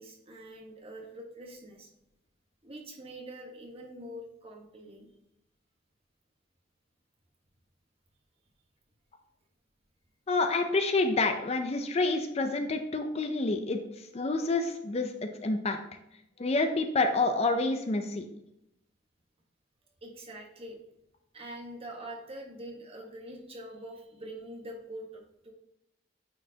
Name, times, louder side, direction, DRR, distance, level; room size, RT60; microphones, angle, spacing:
voice 1, 0.0-1.9 2.6-5.1 20.0-20.8 21.3-25.5, right 1 dB, 30° right, 0 dB, 1.3 m, -44 dB
voice 2, 10.3-15.8 16.4-18.3, left 3 dB, 35° left, 6 dB, 0.5 m, -28 dB
8.9 x 4.4 x 2.8 m, 0.85 s
head